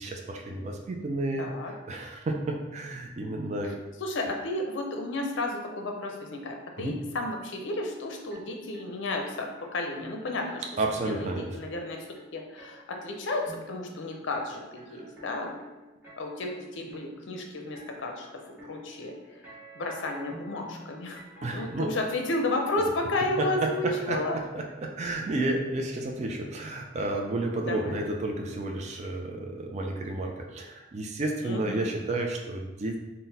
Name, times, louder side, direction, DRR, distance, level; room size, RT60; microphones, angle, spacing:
voice 1, 0.0-3.7 6.8-7.0 10.8-11.5 21.4-21.9 23.4-33.0, right 2 dB, 35° right, 2 dB, 0.4 m, -31 dB
voice 2, 1.4-1.7 4.0-10.6 11.0-15.6 16.2-21.2 21.5-24.4 27.7-28.0 31.4-31.9, left 2 dB, 65° left, 3 dB, 0.6 m, -32 dB
sound 1, 8.3-21.8, right 1 dB, 10° right, 1.0 m, -50 dB
3.9 x 2.1 x 4.0 m, 1.1 s
head